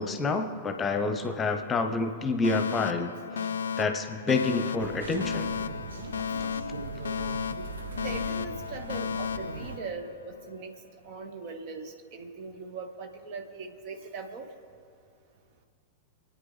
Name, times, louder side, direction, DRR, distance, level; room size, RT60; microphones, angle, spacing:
voice 1, 0.0-3.1 3.8-5.5, left 3 dB, 20° left, 7 dB, 1.1 m, -28 dB
Alarm, 2.4-10.5, left 7 dB, 70° left, 0.3 m, -34 dB
sound 1, 4.8-9.8, right 3 dB, 70° right, 1.0 m, -39 dB
voice 2, 8.0-10.8 11.0-14.5, right 4 dB, 45° right, 6 dB, 1.5 m, -40 dB
28.5 x 9.5 x 3.5 m, 2.3 s
figure-of-eight pair, 90°, 0 cm